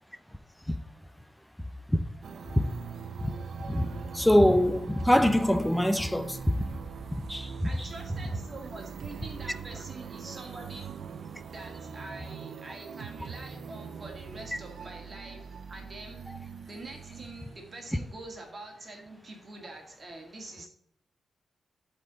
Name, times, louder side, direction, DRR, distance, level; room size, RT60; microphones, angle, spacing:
sound 1, 2.2-18.5, right 6 dB, 60° right, 0.5 m, -42 dB
voice 1, 3.6-3.9 4.1-6.7 7.1-7.7, equal, 5° left, 0.5 m, -24 dB
voice 2, 7.6-11.0 11.5-15.4 15.7-16.3 16.7-20.7, right 2 dB, 30° right, 2.0 m, -45 dB
8.0 x 4.4 x 6.8 m
wide cardioid pair, 175°, 0 cm